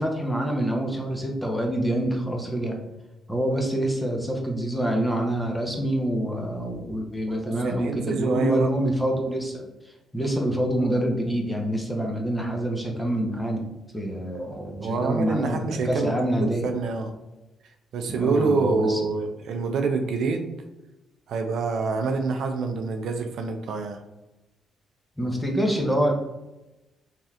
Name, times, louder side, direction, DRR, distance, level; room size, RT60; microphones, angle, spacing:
voice 1, 0.0-2.8 3.3-9.6 10.1-13.7 13.9-16.7 18.1-19.0 25.2-26.1, right 1 dB, 5° left, 1 dB, 0.6 m, -26 dB
voice 2, 7.4-8.7 14.8-17.1 17.9-20.5 21.3-24.0, right 4 dB, 70° right, 5 dB, 0.4 m, -26 dB
3.2 x 2.7 x 2.3 m, 1.0 s
cardioid pair, 90°, 0 cm